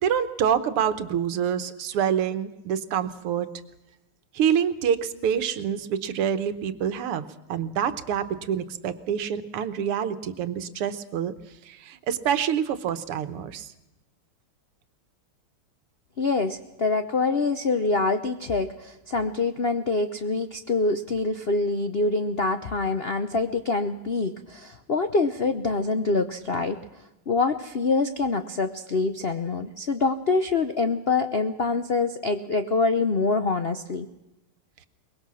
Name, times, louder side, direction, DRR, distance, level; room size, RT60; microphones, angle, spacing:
voice 1, 0.0-3.5 4.3-7.2 7.5-11.3 11.7-13.7, right 8 dB, 85° right, 12 dB, 2.0 m, -26 dB
voice 2, 16.2-26.8 27.3-34.1, left 3 dB, 65° left, 9 dB, 0.6 m, -25 dB
23.0 x 21.5 x 6.3 m, 0.98 s
omnidirectional pair, 2.4 m